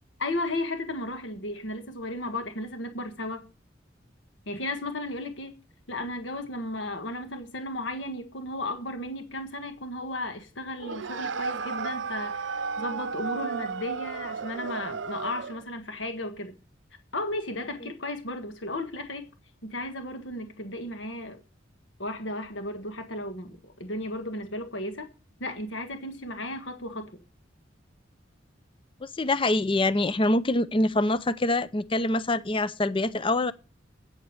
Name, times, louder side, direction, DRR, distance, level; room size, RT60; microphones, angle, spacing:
voice 1, 0.2-3.5 4.5-5.5 5.9-16.5 17.1-19.3 19.6-21.4 22.0-25.1 25.4-27.1, left 1 dB, 70° left, 1.6 m, -34 dB
sound 1, 10.8-15.7, right 5 dB, 70° right, 0.6 m, -33 dB
voice 2, 29.0-33.5, left 2 dB, 25° left, 0.6 m, -25 dB
8.9 x 8.6 x 7.2 m
head